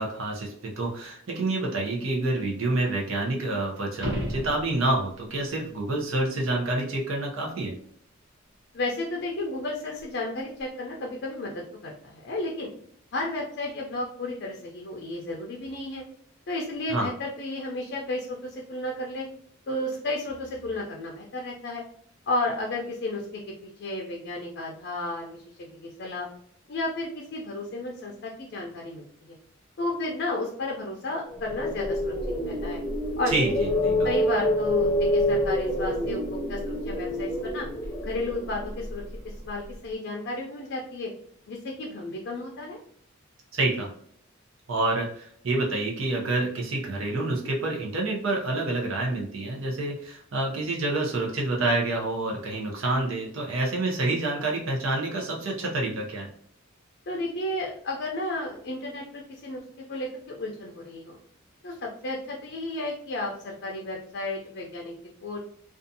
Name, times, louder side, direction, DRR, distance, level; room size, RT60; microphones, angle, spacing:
voice 1, 0.0-7.7 16.9-17.1 33.3-34.1 43.5-43.9 44.7-56.3, right 2 dB, 80° right, 0 dB, 0.7 m, -28 dB
sound 1, 3.9-5.1 10.0-10.1, equal, 50° right, 1.0 m, -32 dB
voice 2, 8.7-11.5 11.8-12.7 13.1-16.0 16.5-19.3 19.7-21.8 22.3-26.3 26.7-29.4 29.8-32.1 32.4-32.8 33.2-33.3 34.0-37.7 38.0-39.0 39.4-41.1 41.5-42.8 57.1-59.6 59.9-61.2 61.6-64.9 65.2-65.4, left 2 dB, 55° left, -1 dB, 0.4 m, -33 dB
sound 2, 31.3-39.4, left 1 dB, 15° left, 0.6 m, -27 dB
2.5 x 2.3 x 2.6 m, 0.62 s
head